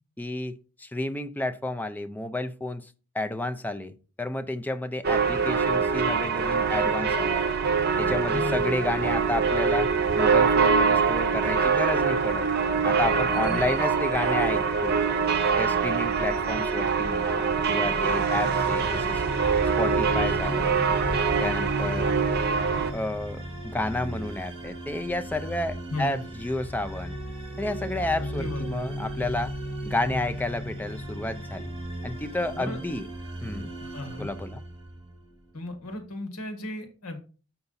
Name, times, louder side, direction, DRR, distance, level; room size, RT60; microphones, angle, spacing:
voice 1, 0.2-7.4 8.0-12.5 12.8-15.0 15.6-19.2 19.8-21.0 21.4-22.1 22.9-27.2 27.6-29.5 29.9-31.7 32.0-33.1 33.4-33.7 34.2-34.6, left 2 dB, 10° left, 0.4 m, -31 dB
sound 1, 5.0-22.9, right 5 dB, 45° right, 0.8 m, -24 dB
voice 2, 8.3-8.6 13.4-13.6 25.9-26.2 28.2-28.9 32.5-32.8 33.8-34.3 35.5-37.2, left 2 dB, 80° left, 1.7 m, -35 dB
sound 2, 18.2-35.3, right 1 dB, 25° right, 2.4 m, -36 dB
6.6 x 5.8 x 4.0 m
head